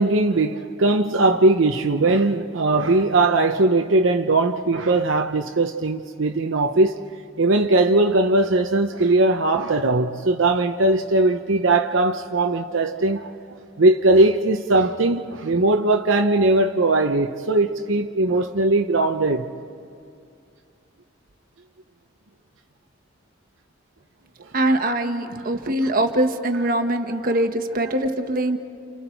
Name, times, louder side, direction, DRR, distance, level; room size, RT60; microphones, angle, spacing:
voice 1, 0.0-7.0 7.4-13.3 13.8-19.5, right 2 dB, 75° right, 0.8 m, -19 dB
voice 2, 24.5-28.6, right 1 dB, 45° right, 1.3 m, -22 dB
29.5 x 29.5 x 4.6 m
head